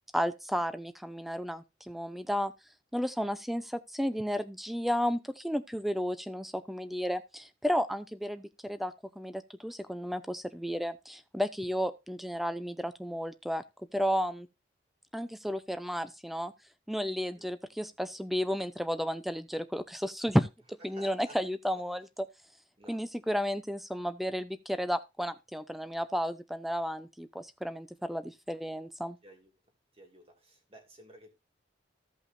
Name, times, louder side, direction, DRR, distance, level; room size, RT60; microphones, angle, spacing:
voice 1, 0.1-2.5 2.9-13.6 13.9-14.5 15.1-16.5 16.9-22.3 22.9-29.2, equal, ahead, 0.6 m, -33 dB
voice 2, 17.3-17.8 20.9-21.4 22.8-23.1 29.2-29.5 29.9-31.4, right 1 dB, 30° right, 2.6 m, -54 dB
15.5 x 5.5 x 2.6 m
head